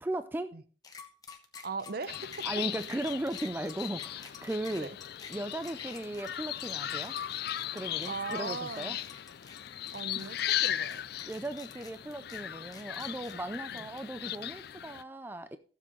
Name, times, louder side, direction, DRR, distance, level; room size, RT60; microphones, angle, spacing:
voice 1, 0.0-0.6 2.4-4.9 5.3-7.2 7.7-9.0 10.1-10.3 11.2-15.6, right 1 dB, 10° right, 0.4 m, -37 dB
sound 1, 0.8-14.3, left 5 dB, 20° left, 1.2 m, -51 dB
voice 2, 1.6-2.5 4.7-5.0 8.0-9.0 9.9-11.0 13.7-13.9, right 4 dB, 55° right, 0.8 m, -39 dB
sound 2, 2.1-15.0, left 12 dB, 55° left, 0.4 m, -37 dB
15.5 x 7.5 x 3.1 m
head